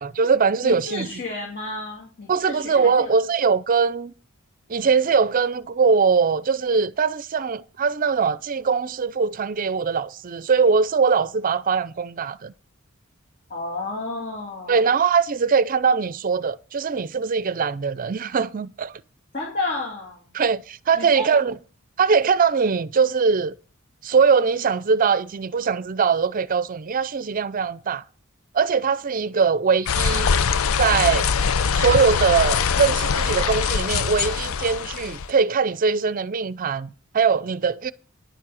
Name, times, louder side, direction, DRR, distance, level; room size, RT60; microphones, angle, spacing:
voice 1, 0.0-1.2 2.3-4.1 4.7-12.5 14.7-19.0 20.3-21.6 22.0-23.5 24.0-28.0 28.5-30.3 30.8-31.3 31.7-37.9, right 5 dB, 40° right, 0.5 m, -21 dB
voice 2, 0.6-3.1 13.5-14.8 19.3-20.2 20.9-21.3, left 2 dB, 45° left, 2.4 m, -31 dB
sound 1, 29.9-35.3, left 6 dB, 80° left, 0.5 m, -22 dB
10.0 x 7.4 x 6.3 m
head